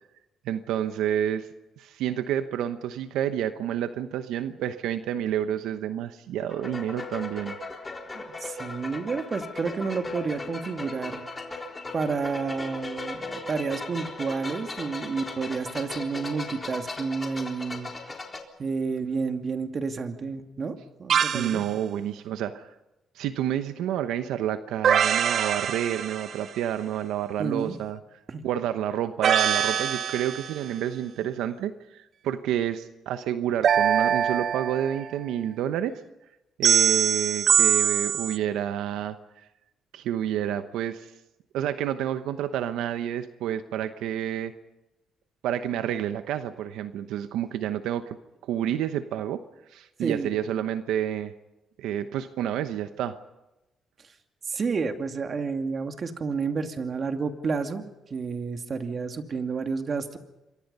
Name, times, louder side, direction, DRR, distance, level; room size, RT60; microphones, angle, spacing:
voice 1, 0.4-1.5 1.8-7.5 21.3-22.7 23.1-28.0 28.4-36.0 36.6-39.5 39.9-41.1 41.5-44.5 45.4-48.2 48.4-49.4 49.7-51.3 51.8-53.2, right 10 dB, 90° right, 10 dB, 1.0 m, -29 dB
sound 1, 6.5-18.4, left 3 dB, 25° left, 3.9 m, -37 dB
voice 2, 8.1-11.2 11.9-17.9 18.6-21.7 27.4-27.8 28.3-28.5 50.0-50.3 54.5-57.8 58.1-60.2, right 5 dB, 45° right, 6 dB, 2.5 m, -30 dB
sound 2, 21.1-21.6 24.8-26.6 29.2-30.7 33.6-35.1 36.6-38.4, right 8 dB, 60° right, 0.7 m, -23 dB
27.5 x 23.0 x 5.6 m, 0.95 s
cardioid pair, 90°, 0 cm